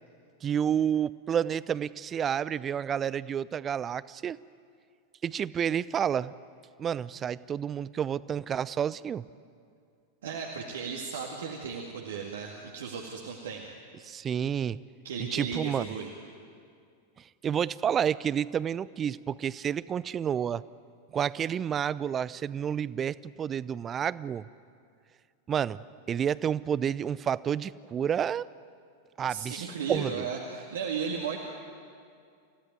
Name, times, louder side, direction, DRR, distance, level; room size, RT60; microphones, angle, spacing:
voice 1, 0.4-4.4 5.2-6.3 6.8-9.2 14.0-14.8 15.2-15.9 17.4-20.6 21.1-24.5 25.5-25.8 26.1-28.5 29.2-30.2, right 8 dB, 25° right, 19 dB, 0.5 m, -30 dB
voice 2, 10.2-13.7 15.0-16.1 29.2-31.4, right 6 dB, 60° right, 0 dB, 2.1 m, -35 dB
28.5 x 16.5 x 9.2 m, 2.3 s
figure-of-eight pair, 90°, 0 cm